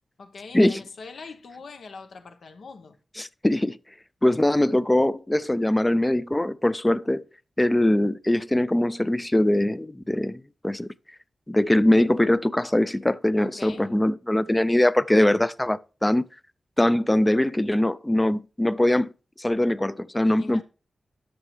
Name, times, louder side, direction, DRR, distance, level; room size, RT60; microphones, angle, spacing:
voice 1, 0.2-3.0 13.4-13.9 20.4-20.6, left 4 dB, 80° left, 1.0 m, -42 dB
voice 2, 3.2-3.8 4.2-7.2 7.6-10.9 11.5-16.2 16.8-19.1 19.4-20.6, left 1 dB, 15° left, 0.4 m, -22 dB
12.5 x 5.6 x 3.2 m
wide cardioid pair, 120°, 0 cm